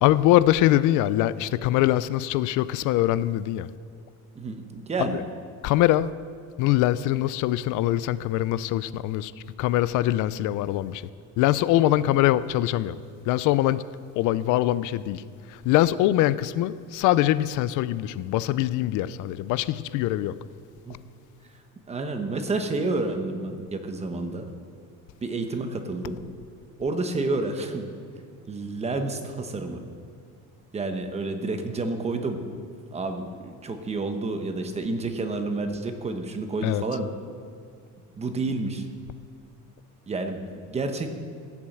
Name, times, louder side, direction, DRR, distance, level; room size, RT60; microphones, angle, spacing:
voice 1, 0.0-3.7 5.0-5.2 5.6-6.1 6.6-9.3 9.6-11.0 11.4-12.9 13.3-13.8 14.2-15.2 15.5-20.4 36.6-36.8, left 14 dB, 75° left, 0.5 m, -23 dB
voice 2, 4.3-5.2 20.9-21.0 21.9-24.5 25.2-26.2 26.8-27.9 28.5-29.8 30.7-32.4 32.9-37.1 38.2-38.8 40.1-41.1, right 3 dB, 20° right, 1.0 m, -29 dB
15.5 x 7.3 x 7.9 m
cardioid pair, 165°, 31 cm